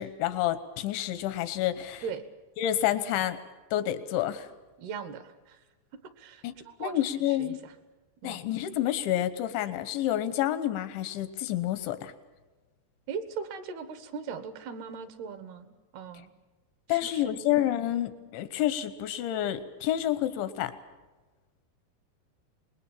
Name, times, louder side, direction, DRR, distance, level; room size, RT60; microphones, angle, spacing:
voice 1, 0.0-2.0 2.6-3.4 3.7-4.5 6.4-6.5 6.8-7.6 8.2-12.1 16.9-20.7, left 12 dB, 90° left, 11 dB, 3.5 m, -29 dB
voice 2, 4.8-5.6 6.2-7.0 7.3-7.7 8.2-8.4 13.1-16.3 16.9-17.4, right 6 dB, 70° right, 10 dB, 3.3 m, -39 dB
26.0 x 20.5 x 7.3 m, 1.2 s
omnidirectional pair, 5.1 m